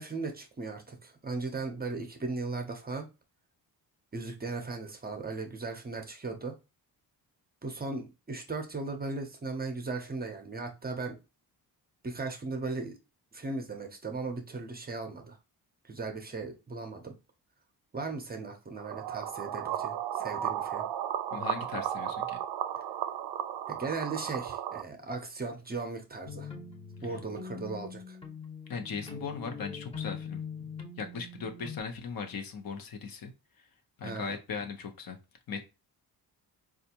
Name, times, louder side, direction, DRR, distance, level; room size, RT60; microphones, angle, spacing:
voice 1, 0.0-3.1 4.1-6.5 7.6-11.2 12.0-13.0 13.3-15.4 15.9-17.1 17.9-20.9 23.7-26.5 27.0-28.2 34.0-34.4, right 3 dB, 25° right, 0.6 m, -37 dB
sound 1, 18.8-24.8, right 10 dB, 75° right, 0.5 m, -34 dB
voice 2, 21.3-22.4 28.7-30.7 31.0-33.3 33.6-33.7 34.0-35.2 35.5-35.7, left 5 dB, 60° left, 0.8 m, -38 dB
sound 2, 26.2-31.8, left 6 dB, 15° left, 0.8 m, -42 dB
4.3 x 2.4 x 2.8 m
cardioid pair, 130°, 39 cm